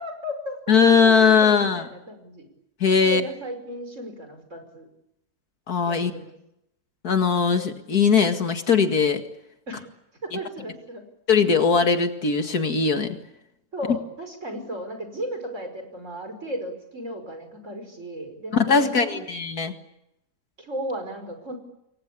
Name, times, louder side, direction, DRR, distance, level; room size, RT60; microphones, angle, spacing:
voice 1, 0.0-2.5 3.0-4.9 5.8-6.3 9.7-9.9 10.2-11.0 13.7-19.3 20.6-21.6, equal, 45° right, 6 dB, 5.8 m, -35 dB
voice 2, 0.7-1.8 2.8-3.2 5.7-6.1 7.0-9.2 11.3-13.2 18.5-19.7, left 5 dB, 70° left, 6 dB, 2.5 m, -20 dB
28.0 x 23.0 x 8.5 m, 0.84 s
omnidirectional pair, 1.7 m